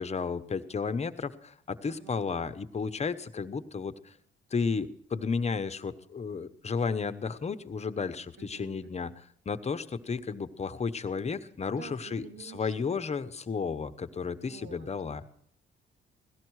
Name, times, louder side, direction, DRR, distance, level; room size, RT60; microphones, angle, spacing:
voice 1, 0.0-4.1 4.5-9.1 9.5-15.2, left 5 dB, 35° left, 10 dB, 0.9 m, -33 dB
voice 2, 1.9-2.2 8.4-8.9 11.8-13.3 14.4-15.3, right 6 dB, 85° right, 4 dB, 2.5 m, -50 dB
17.5 x 13.5 x 4.7 m, 0.66 s
cardioid pair, 90°, 20 cm